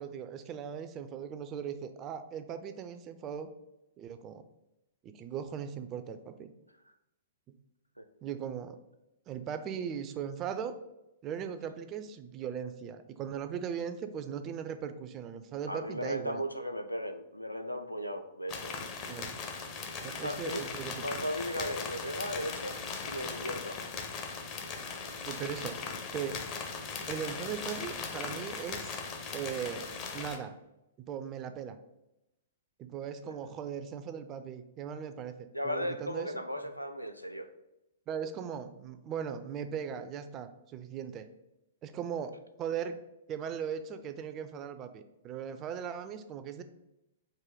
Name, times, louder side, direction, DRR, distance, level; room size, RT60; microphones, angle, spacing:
voice 1, 0.0-3.5 4.0-4.4 5.0-6.5 7.5-7.6 8.2-8.8 9.3-10.8 11.2-16.4 19.1-19.4 20.0-21.1 25.3-25.8 26.1-26.4 27.1-29.0 29.3-30.6 31.0-31.8 32.8-36.4 38.1-41.3 41.8-43.0 43.3-46.6, right 8 dB, 25° right, 9 dB, 0.3 m, -38 dB
voice 2, 15.7-18.8 20.2-20.6 21.0-23.8 33.2-33.3 35.5-37.5, equal, 90° left, 8 dB, 0.4 m, -36 dB
sound 1, 18.5-30.4, left 5 dB, 35° left, 0.6 m, -39 dB
3.8 x 2.6 x 4.6 m, 0.91 s
figure-of-eight pair, 110°, 0 cm